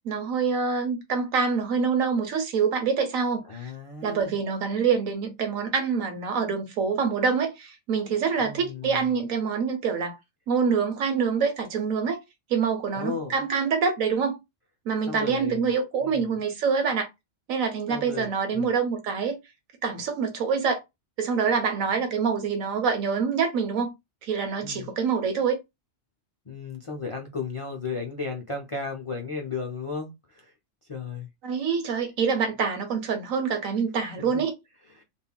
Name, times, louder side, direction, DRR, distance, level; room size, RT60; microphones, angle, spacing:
voice 1, 0.0-3.7 4.0-10.2 10.5-12.2 12.5-14.4 14.8-17.1 17.5-19.4 19.8-20.8 21.2-23.9 24.2-25.6 31.4-34.5, right 5 dB, 85° right, 1.3 m, -26 dB
voice 2, 3.4-4.4 8.4-9.2 12.9-13.3 15.1-15.6 16.0-16.4 17.9-18.7 24.6-24.9 26.5-30.5 30.9-31.3 34.2-34.4 34.9-35.0, left 4 dB, 50° left, 0.3 m, -35 dB
3.6 x 2.3 x 2.2 m
omnidirectional pair, 1.4 m